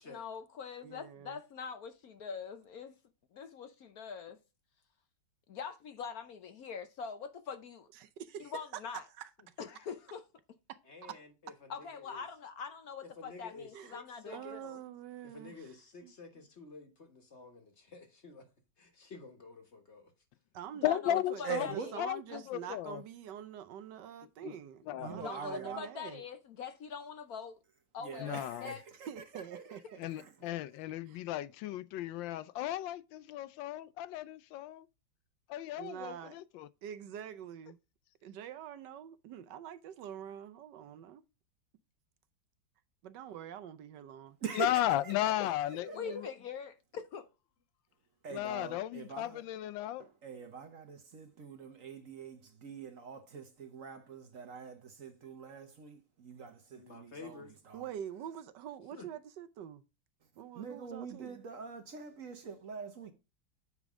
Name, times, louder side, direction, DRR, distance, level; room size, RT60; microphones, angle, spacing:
voice 1, 0.1-3.0 3.3-4.4 5.5-7.9 8.4-9.0 9.6-10.2 11.7-14.8 20.8-21.9 22.3-22.5 25.2-27.6 27.9-28.8 45.4-45.5 45.9-47.3, left 6 dB, 60° left, 1.1 m, -43 dB
voice 2, 0.8-1.4 8.0-8.5 9.2-9.3 10.7-10.8 13.7-14.0 14.3-15.5 16.0-16.1 20.5-21.4 21.7-26.2 29.1-30.1 31.1-31.2 35.8-36.4 36.8-37.8 38.2-41.2 43.0-44.4 57.7-59.8 60.4-61.4, right 9 dB, 75° right, 1.3 m, -45 dB
voice 3, 10.8-12.2 13.0-14.6 15.2-18.5 18.8-20.1 21.0-21.1 45.7-46.3 56.7-57.5 58.9-59.1, left 4 dB, 40° left, 1.6 m, -50 dB
voice 4, 20.8-21.7 22.0-22.2 22.5-23.0 24.4-24.5 24.9-25.2 28.2-28.6 30.0-34.8 35.5-36.7 44.6-45.9 48.3-50.0, left 13 dB, 85° left, 1.3 m, -35 dB
voice 5, 21.4-21.9 25.0-25.8 28.0-30.3 30.7-30.8 44.4-46.2 48.2-49.5 50.0-57.4 57.7-57.9 60.5-63.1, right 6 dB, 50° right, 1.2 m, -44 dB
8.4 x 5.2 x 3.7 m
omnidirectional pair, 2.0 m